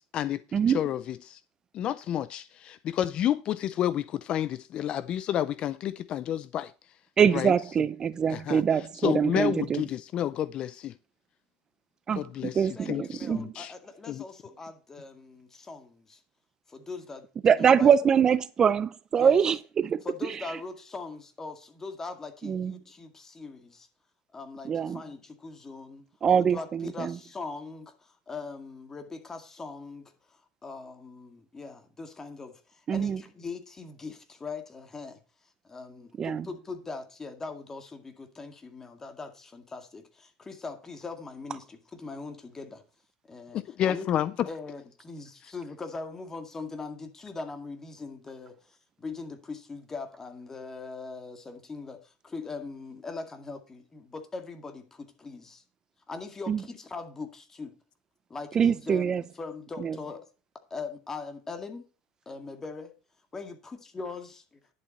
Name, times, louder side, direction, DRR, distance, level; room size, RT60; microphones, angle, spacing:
voice 1, 0.0-1.4 1.7-6.7 7.3-7.5 8.3-8.6 9.0-11.0 12.2-13.7 14.1-14.2 43.5-44.5, left 11 dB, 45° left, 0.5 m, -30 dB
voice 2, 7.2-9.8 12.1-13.5 17.4-20.4 22.4-22.7 24.6-25.0 26.2-27.2 32.9-33.2 36.2-36.5 56.5-56.6 58.5-59.2 59.8-60.0, right 7 dB, 30° right, 0.5 m, -24 dB
voice 3, 12.8-16.2 16.7-17.3 17.6-17.9 19.1-19.4 20.0-23.9 24.3-26.1 26.4-35.2 35.6-42.8 43.2-43.6 43.9-44.1 44.4-55.6 56.1-57.8 58.3-60.3 60.7-61.9 62.3-62.9 63.3-64.6, left 4 dB, 20° left, 2.0 m, -41 dB
10.5 x 7.5 x 4.2 m
supercardioid pair, 110°, 2 cm